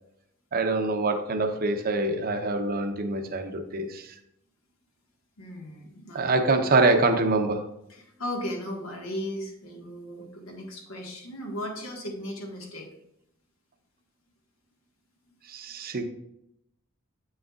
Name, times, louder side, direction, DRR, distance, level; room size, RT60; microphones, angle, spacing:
voice 1, 0.5-4.1 6.1-7.6 15.5-16.0, right 2 dB, 45° right, 6 dB, 0.7 m, -25 dB
voice 2, 5.4-6.6 7.9-12.9, equal, 80° left, 1 dB, 1.6 m, -36 dB
8.0 x 6.3 x 2.4 m, 0.79 s
head